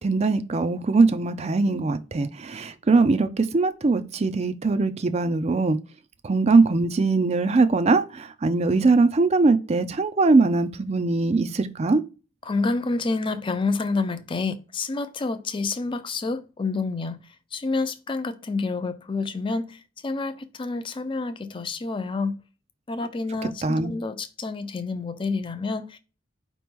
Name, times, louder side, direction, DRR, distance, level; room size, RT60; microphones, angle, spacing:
voice 1, 0.0-5.8 6.2-12.0 23.6-23.9, right 3 dB, 30° right, 0.4 m, -21 dB
voice 2, 12.5-17.2 17.5-22.3 22.9-26.0, left 3 dB, 25° left, 0.4 m, -28 dB
5.0 x 3.0 x 3.5 m
head